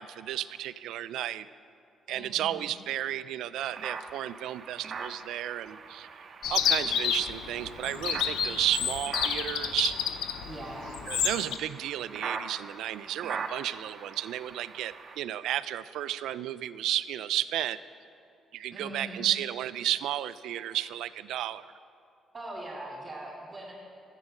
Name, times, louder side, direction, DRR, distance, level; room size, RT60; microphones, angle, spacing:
voice 1, 0.0-1.5 2.1-6.1 6.5-10.0 11.1-17.8 18.5-21.7, right 12 dB, 85° right, 15 dB, 0.3 m, -33 dB
voice 2, 2.1-2.7 10.4-11.0 18.7-19.3 22.3-23.7, right 1 dB, 25° right, -5 dB, 2.7 m, -41 dB
sound 1, 3.6-15.2, right 5 dB, 50° right, 0.8 m, -42 dB
Chirp tweet, 6.4-11.6, left 8 dB, 85° left, 0.6 m, -30 dB
12.5 x 8.3 x 6.4 m, 2.5 s
cardioid pair, 90°, 0 cm